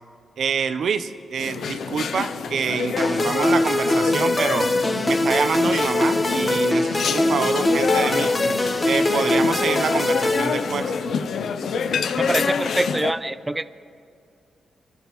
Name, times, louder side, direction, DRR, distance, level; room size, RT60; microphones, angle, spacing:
voice 1, 0.4-4.7 5.0-8.4 8.8-10.9, right 6 dB, 70° right, 10 dB, 0.6 m, -26 dB
sound 1, 1.4-13.1, left 6 dB, 75° left, 0.6 m, -27 dB
sound 2, 3.0-11.2, left 1 dB, 30° left, 1.2 m, -22 dB
voice 2, 12.2-13.6, right 1 dB, 20° right, 13 dB, 0.4 m, -24 dB
27.0 x 12.0 x 3.1 m, 2.4 s
cardioid pair, 60°, 0 cm